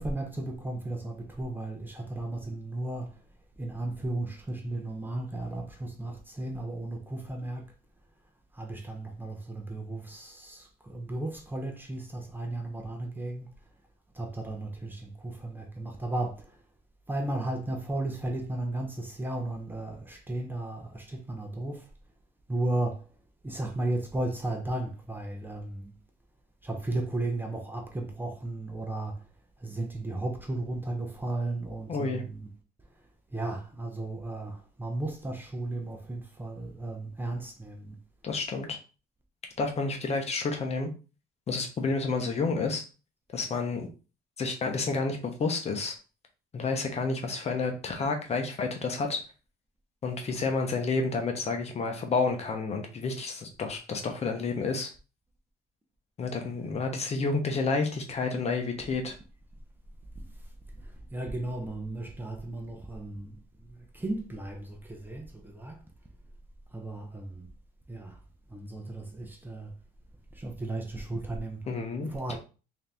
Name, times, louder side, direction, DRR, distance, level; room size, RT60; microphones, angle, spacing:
voice 1, 0.0-3.1 3.6-7.6 8.5-13.5 14.1-16.5 17.1-21.8 22.5-23.0 23.4-25.9 26.6-29.2 29.6-32.5 33.3-38.0 60.2-60.3 61.1-63.4 63.9-65.8 66.7-67.5 67.9-68.1 68.5-69.7 70.4-71.6 72.1-72.4, right 2 dB, 10° right, 0.8 m, -34 dB
voice 2, 31.9-32.2 38.2-38.8 39.6-40.9 41.5-42.8 43.3-43.9 44.4-45.9 46.5-49.2 50.0-54.9 56.2-59.1 71.7-72.1, left 4 dB, 40° left, 0.9 m, -30 dB
3.5 x 2.8 x 3.4 m
cardioid pair, 110°, 17 cm